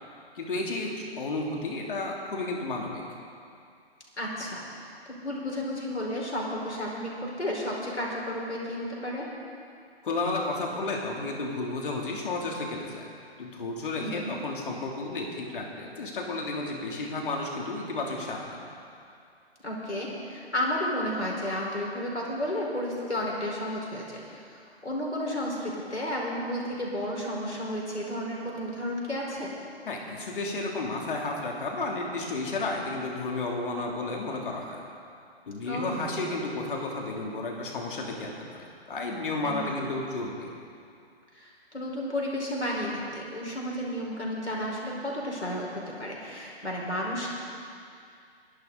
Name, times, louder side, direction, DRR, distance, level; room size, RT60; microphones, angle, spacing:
voice 1, 0.3-3.0 10.0-13.1 13.4-18.6 29.8-34.8 35.5-40.5, left 2 dB, 50° left, -1 dB, 3.0 m, -32 dB
voice 2, 4.2-9.2 13.9-14.4 19.6-29.5 35.6-36.0 39.4-39.8 41.3-47.3, left 1 dB, 90° left, -3 dB, 4.9 m, -32 dB
24.0 x 12.0 x 4.0 m, 2.4 s
figure-of-eight pair, 135°, 33 cm